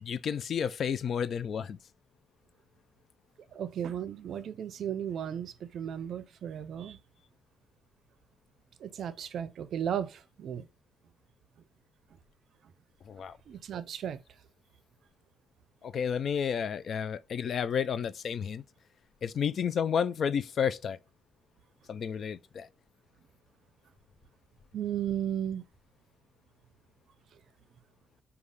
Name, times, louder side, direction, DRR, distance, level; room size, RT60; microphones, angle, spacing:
voice 1, 0.0-1.8 13.1-13.3 15.8-18.6 19.2-21.0 21.9-22.7, left 7 dB, 60° left, 0.3 m, -31 dB
voice 2, 3.5-7.0 8.8-10.7 13.5-14.2 24.7-25.6, right 9 dB, 70° right, 0.4 m, -35 dB
5.2 x 2.3 x 3.2 m
cardioid pair, 100°, 0 cm